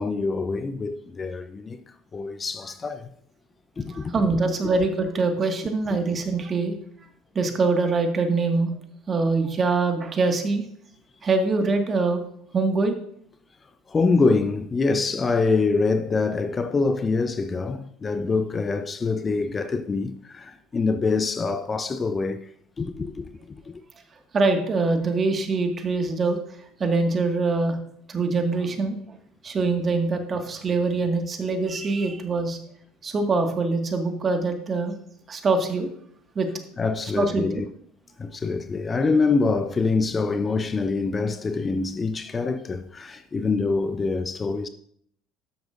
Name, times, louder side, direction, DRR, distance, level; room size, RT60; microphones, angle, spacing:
voice 1, 0.0-1.8 2.1-3.1 3.8-4.1 13.9-22.4 22.8-23.2 36.8-37.7 38.2-44.7, left 4 dB, 25° left, 0.7 m, -25 dB
voice 2, 3.9-6.7 7.4-8.7 9.1-10.6 11.2-12.2 12.5-12.9 24.3-26.4 26.8-27.8 28.1-29.0 29.4-32.6 33.0-35.0 35.3-35.9 36.4-36.5 37.1-37.5, right 3 dB, 30° right, 1.8 m, -23 dB
12.5 x 10.0 x 2.6 m
hypercardioid pair, 65°, 0 cm